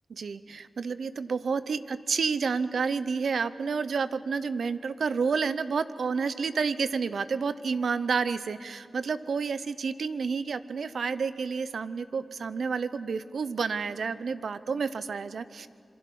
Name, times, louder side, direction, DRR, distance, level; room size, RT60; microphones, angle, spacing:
voice 1, 0.1-15.7, right 5 dB, 85° right, 14 dB, 0.7 m, -30 dB
26.5 x 22.5 x 5.5 m, 2.4 s
cardioid pair, 65°, 0 cm